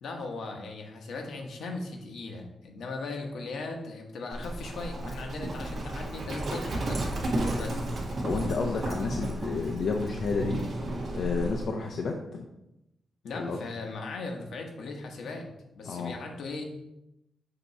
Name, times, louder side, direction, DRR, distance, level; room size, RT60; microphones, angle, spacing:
voice 1, 0.0-7.8 13.2-15.5 15.7-16.6, left 3 dB, 80° left, 2 dB, 1.1 m, -38 dB
Livestock farm animals working animals, 4.3-11.7, right 1 dB, 55° right, 1.7 m, -33 dB
voice 2, 8.2-10.6 11.1-12.4 13.3-13.6 15.8-16.1, left 4 dB, 65° left, 1 dB, 0.6 m, -31 dB
6.8 x 3.0 x 5.6 m, 0.89 s
wide cardioid pair, 120°, 0 cm